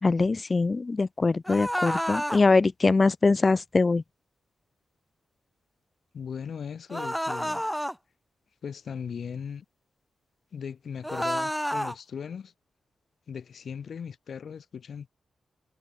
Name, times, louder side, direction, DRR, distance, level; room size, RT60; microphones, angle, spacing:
voice 1, 0.0-4.0, left 3 dB, 35° left, 1.1 m, -23 dB
sound 1, 1.4-2.4 6.9-7.9 11.0-11.9, equal, ahead, 1.2 m, -29 dB
voice 2, 6.1-7.7 8.6-9.6 10.5-12.5 13.3-15.1, left 7 dB, 65° left, 3.4 m, -38 dB
cardioid pair, 70°, 0 cm